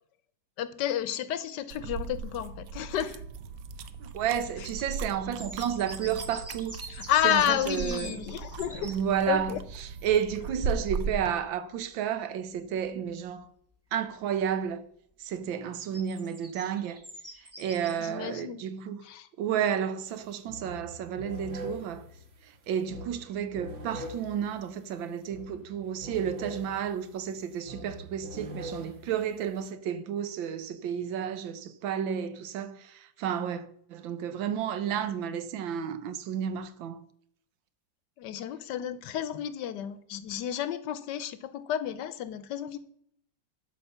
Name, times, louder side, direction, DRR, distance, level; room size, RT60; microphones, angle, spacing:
voice 1, 0.6-3.2 6.9-8.9 9.3-9.6 18.0-18.6 19.0-19.3 38.2-42.8, left 10 dB, 70° left, 1.3 m, -31 dB
sound 1, 1.7-11.4, right 4 dB, 65° right, 0.9 m, -38 dB
voice 2, 4.0-6.8 7.2-8.2 8.8-13.5 13.9-14.8 15.2-17.0 17.6-19.0 19.4-22.0 22.7-37.0, right 8 dB, 85° right, 1.6 m, -31 dB
sound 2, 4.1-9.0 11.8-11.9 14.4-14.5 15.7-18.0, right 1 dB, 10° right, 1.1 m, -45 dB
sound 3, 20.1-20.2 20.5-29.7, equal, 45° right, 1.4 m, -43 dB
11.5 x 4.6 x 6.9 m
omnidirectional pair, 2.1 m